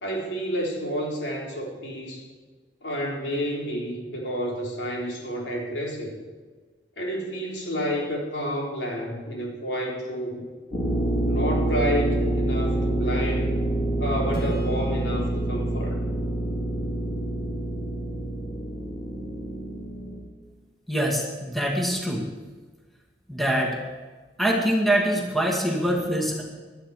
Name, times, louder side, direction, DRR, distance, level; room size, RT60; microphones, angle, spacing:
voice 1, 0.0-2.3 2.8-6.1 7.0-10.4 11.3-13.5 14.0-16.0, equal, 80° left, -1 dB, 3.8 m, -30 dB
sound 1, 10.7-20.2, right 1 dB, 25° left, 3.2 m, -27 dB
Acoustic guitar / Strum, 14.3-17.9, equal, 55° left, 2.4 m, -42 dB
voice 2, 20.9-22.3 23.3-23.8 24.4-26.4, right 1 dB, ahead, -1 dB, 2.1 m, -24 dB
17.5 x 12.5 x 4.9 m, 1.4 s
head